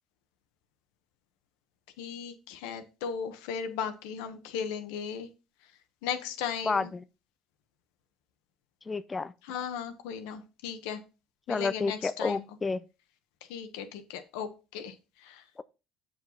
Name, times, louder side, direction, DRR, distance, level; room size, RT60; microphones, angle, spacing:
voice 1, 2.0-5.3 6.0-6.9 9.5-11.0 11.5-12.4 13.5-14.9 15.2-15.4, left 7 dB, 85° left, 1.2 m, -36 dB
voice 2, 6.6-7.0 8.9-9.3 11.5-12.8, left 4 dB, 20° left, 0.4 m, -30 dB
7.7 x 5.2 x 4.1 m
supercardioid pair, 95°, 0 cm